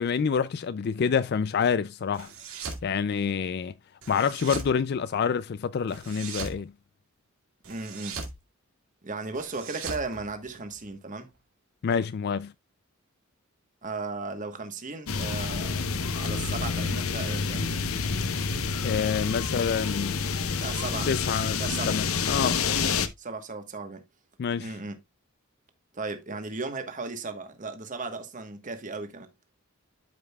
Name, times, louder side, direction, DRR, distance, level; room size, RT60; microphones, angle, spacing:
voice 1, 0.0-2.3 2.8-3.7 4.1-6.7 11.8-12.5 18.8-20.3 21.1-22.6 24.4-24.7, left 6 dB, 50° left, 0.3 m, -27 dB
sound 1, 2.1-2.9 4.0-4.7 5.9-6.6 7.6-8.4 9.3-10.9, right 4 dB, 80° right, 2.4 m, -39 dB
voice 2, 7.6-8.2 9.0-11.3 13.8-15.9 16.1-17.7 20.4-21.1 21.6-22.0 23.2-24.0 24.6-25.0 25.9-29.3, right 3 dB, 35° right, 1.2 m, -36 dB
sound 2, 15.1-23.1, left 5 dB, 85° left, 0.9 m, -28 dB
12.5 x 5.4 x 2.3 m
head